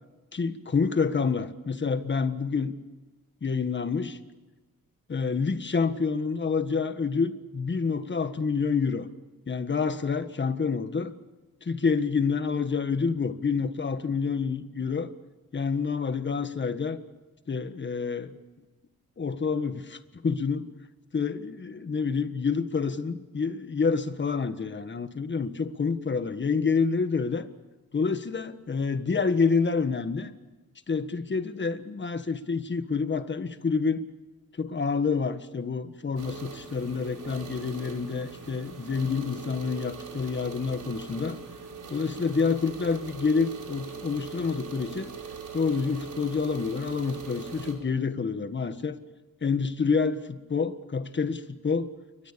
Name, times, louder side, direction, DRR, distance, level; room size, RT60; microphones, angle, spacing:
voice 1, 0.3-2.7 3.4-4.2 5.1-9.1 9.5-11.1 11.6-15.1 15.5-17.0 17.5-18.4 19.2-20.7 21.1-27.5 27.9-30.3 30.9-34.0 34.6-41.4 41.9-45.1 45.5-49.0 49.4-51.9, left 5 dB, 30° left, 10 dB, 1.6 m, -28 dB
sound 1, 36.2-47.7, right 5 dB, 60° right, 5.7 m, -41 dB
30.0 x 23.5 x 7.0 m, 1.2 s
wide cardioid pair, 145°, 35 cm